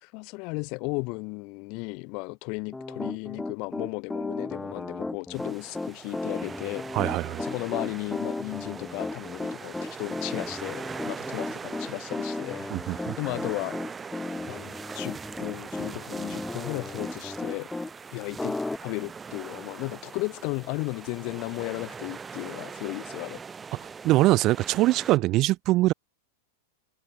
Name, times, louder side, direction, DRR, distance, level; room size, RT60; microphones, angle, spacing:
voice 1, 0.0-6.8 7.4-13.8 14.5-17.7 18.1-23.4, left 30 dB, 50° left, 2.6 m, -35 dB
Piano, 2.7-17.9 18.4-18.8, left 2 dB, 10° left, 0.5 m, -34 dB
sound 1, 5.3-25.2, right 5 dB, 20° right, 6.5 m, -41 dB
voice 2, 6.9-7.4 12.7-13.2 23.8-25.9, right 18 dB, 45° right, 0.6 m, -23 dB
hypercardioid pair, 105°, 0 cm